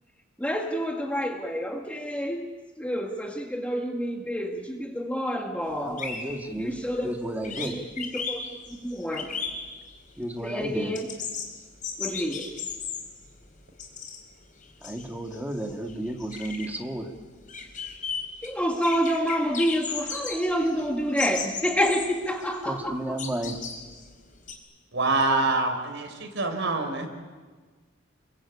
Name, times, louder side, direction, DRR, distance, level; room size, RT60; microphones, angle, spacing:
voice 1, 0.4-2.5 2.8-6.1 6.6-7.2 7.6-8.4 8.8-9.4 10.4-11.1 12.0-12.5 18.4-23.0, equal, 5° left, 1 dB, 1.9 m, -28 dB
sound 1, 5.7-5.8 6.0-7.2 7.4-10.2 10.4-14.3 14.6-24.5, left 5 dB, 40° left, 4.8 m, -36 dB
voice 2, 5.8-6.8 7.0-7.8 10.2-11.0 14.8-17.1 22.6-23.6, right 1 dB, 10° right, 2 dB, 2.3 m, -32 dB
voice 3, 24.9-27.1, right 3 dB, 65° right, 5 dB, 5.2 m, -25 dB
30.0 x 23.0 x 8.7 m, 1.4 s
head